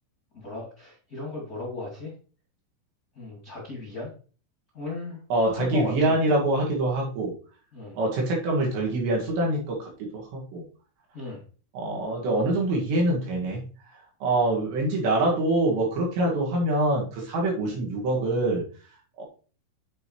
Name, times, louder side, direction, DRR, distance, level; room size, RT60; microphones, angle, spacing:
voice 1, 0.3-2.1 3.1-4.1 4.7-5.2 5.5-6.2 7.7-7.9 11.1-11.4, left 2 dB, 35° left, -4 dB, 1.6 m, -35 dB
voice 2, 5.3-7.3 8.0-10.6 11.7-13.6 14.2-18.6 19.2-19.3, right 1 dB, 65° right, -2 dB, 4.1 m, -25 dB
8.4 x 7.1 x 3.2 m, 0.39 s
omnidirectional pair, 5.5 m